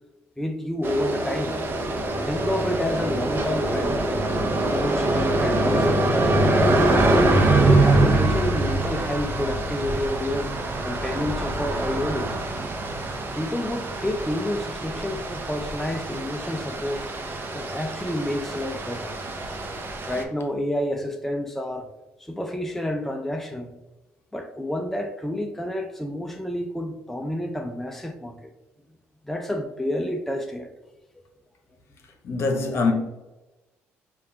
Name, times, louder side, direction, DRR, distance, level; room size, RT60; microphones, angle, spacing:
voice 1, 0.4-1.6 2.2-4.0 4.7-7.2 7.7-10.6 10.8-12.3 13.3-17.1 17.5-19.2 20.1-21.9 22.2-23.7 24.3-28.5 29.2-30.7, left 1 dB, 5° left, 0.4 m, -29 dB
sound 1, 0.8-20.2, right 2 dB, 45° right, 0.6 m, -24 dB
voice 2, 32.2-32.9, left 4 dB, 55° left, 0.8 m, -23 dB
5.2 x 2.4 x 2.7 m
supercardioid pair, 85°, 5 cm